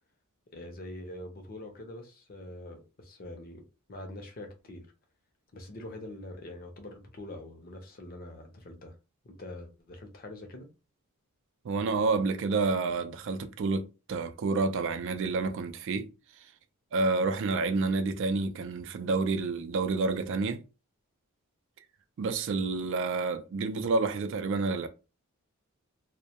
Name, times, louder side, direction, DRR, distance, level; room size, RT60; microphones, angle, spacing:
voice 1, 0.5-3.6 3.9-4.9 5.5-8.9 9.2-10.7, left 1 dB, 40° left, 0.6 m, -44 dB
voice 2, 11.6-16.1 16.9-20.6 22.2-24.9, right 3 dB, 60° right, 0.3 m, -29 dB
2.1 x 2.1 x 2.8 m
head